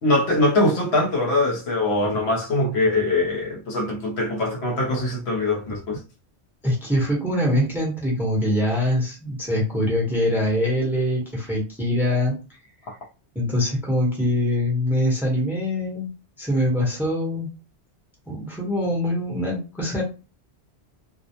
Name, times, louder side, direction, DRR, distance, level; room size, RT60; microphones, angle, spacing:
voice 1, 0.0-6.0, left 2 dB, 70° left, 1.0 m, -22 dB
voice 2, 6.6-12.3 13.3-16.1 16.4-17.5 18.3-20.0, left 1 dB, ahead, 0.7 m, -23 dB
2.3 x 2.0 x 2.7 m
omnidirectional pair, 1.2 m